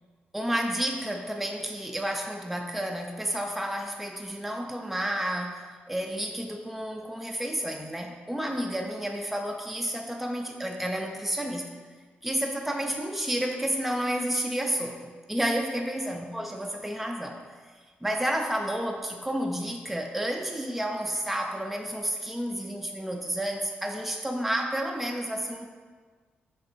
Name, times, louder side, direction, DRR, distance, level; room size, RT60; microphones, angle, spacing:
voice 1, 0.3-11.7 12.2-17.4 18.0-25.7, right 1 dB, 5° right, 2 dB, 0.3 m, -31 dB
5.7 x 3.3 x 2.6 m, 1.5 s
cardioid pair, 105°, 4 cm